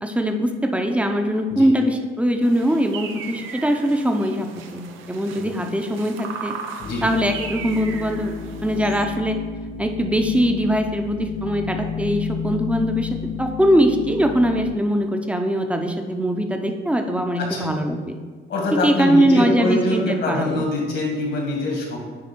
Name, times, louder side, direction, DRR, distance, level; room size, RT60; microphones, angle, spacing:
voice 1, 0.0-6.5 7.0-8.3 8.6-9.4 9.8-13.1 13.4-18.2 18.7-20.6, equal, 5° right, 4 dB, 0.7 m, -21 dB
sound 1, 2.4-9.0, right 6 dB, 85° right, 0.6 m, -37 dB
sound 2, 6.8-14.8, left 6 dB, 35° left, 0.6 m, -31 dB
voice 2, 17.4-17.7 18.5-22.0, left 1 dB, 65° left, 0 dB, 2.0 m, -24 dB
9.5 x 3.2 x 4.6 m, 1.5 s
cardioid pair, 90°, 20 cm